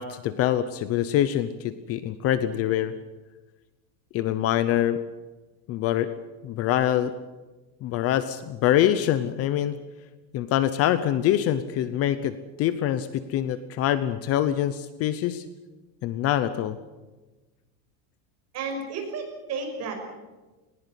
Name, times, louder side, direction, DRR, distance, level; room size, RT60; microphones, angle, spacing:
voice 1, 0.0-2.9 4.1-5.0 5.7-6.1 6.4-7.1 7.8-9.7 10.3-15.4 16.0-16.8, left 11 dB, 35° left, 13 dB, 0.8 m, -25 dB
voice 2, 18.5-20.0, right 4 dB, 35° right, 3 dB, 5.8 m, -32 dB
20.0 x 19.0 x 8.3 m, 1.2 s
cardioid pair, 170°, 44 cm